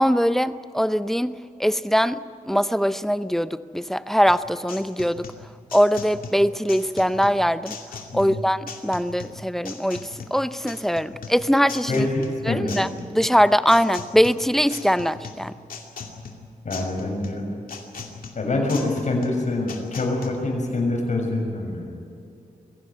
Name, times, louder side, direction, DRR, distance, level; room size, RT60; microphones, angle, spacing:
voice 1, 0.0-5.3 5.7-7.8 8.1-12.1 12.5-12.9 13.1-15.5, equal, ahead, 13 dB, 0.7 m, -22 dB
sound 1, 4.3-20.3, left 4 dB, 80° left, 2.5 m, -39 dB
voice 2, 11.9-12.8 16.6-17.4 18.3-21.9, left 2 dB, 60° left, 1 dB, 6.5 m, -25 dB
22.0 x 16.5 x 9.3 m, 2.5 s
wide cardioid pair, 95°, 14 cm